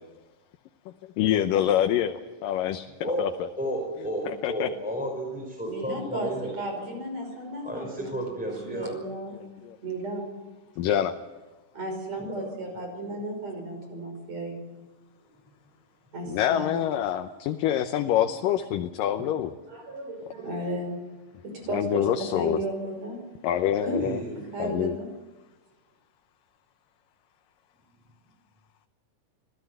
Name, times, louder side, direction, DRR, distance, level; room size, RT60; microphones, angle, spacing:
voice 1, 1.2-3.5 4.3-4.7 9.6-9.8 10.8-11.1 16.3-19.5 21.7-22.6 23.4-24.2 24.6-25.0, left 11 dB, 80° left, 6 dB, 2.6 m, -26 dB
voice 2, 3.0-6.5 7.6-9.0 12.2-12.5 23.8-24.4, right 1 dB, ahead, 0 dB, 4.4 m, -33 dB
voice 3, 5.6-9.3 9.8-10.3 11.7-14.6 16.1-16.8 19.7-21.0 21.4-23.2 23.8-24.0 24.5-25.1, right 1 dB, 50° right, 4 dB, 6.6 m, -34 dB
25.5 x 17.0 x 8.0 m, 1.2 s
omnidirectional pair, 3.9 m